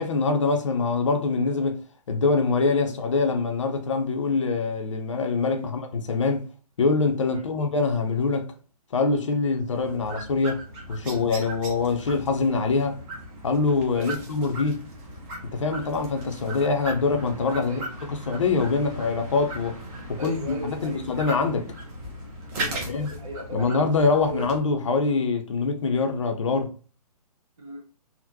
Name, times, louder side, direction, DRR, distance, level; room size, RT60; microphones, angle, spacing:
voice 1, 0.0-6.5 6.8-8.5 8.9-10.6 10.9-13.0 13.4-14.8 15.5-17.8 18.1-19.8 20.1-21.7 22.9-23.1 23.5-26.7, left 4 dB, 50° left, 0.6 m, -24 dB
sound 1, 9.7-24.6, right 1 dB, 15° right, 0.6 m, -38 dB
voice 2, 20.2-21.0 22.5-23.7 24.3-24.4 27.6-27.8, right 1 dB, 55° right, 1.2 m, -38 dB
3.6 x 2.1 x 2.7 m
figure-of-eight pair, 135°, 20 cm